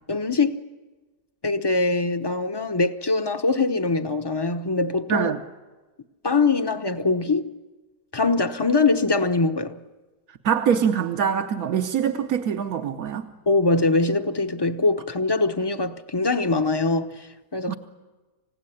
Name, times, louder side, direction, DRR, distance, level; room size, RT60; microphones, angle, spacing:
voice 1, 0.1-0.6 1.4-5.3 6.2-7.5 8.1-9.8 13.5-17.7, left 3 dB, 25° left, 0.6 m, -23 dB
voice 2, 5.1-5.4 10.4-13.3 17.7-17.8, right 8 dB, 70° right, 1.4 m, -24 dB
27.0 x 17.0 x 9.9 m
omnidirectional pair, 1.6 m